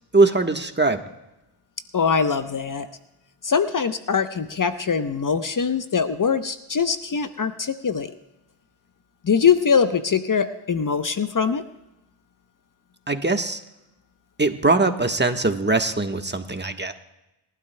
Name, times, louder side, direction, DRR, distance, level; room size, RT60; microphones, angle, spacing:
voice 1, 0.1-1.0 13.1-13.6 14.4-16.9, right 3 dB, 20° right, 6 dB, 1.3 m, -21 dB
voice 2, 1.9-2.9 3.4-8.1 9.2-11.6, left 6 dB, 40° left, 10 dB, 0.9 m, -22 dB
22.5 x 12.0 x 2.2 m, 0.95 s
supercardioid pair, 45°, 49 cm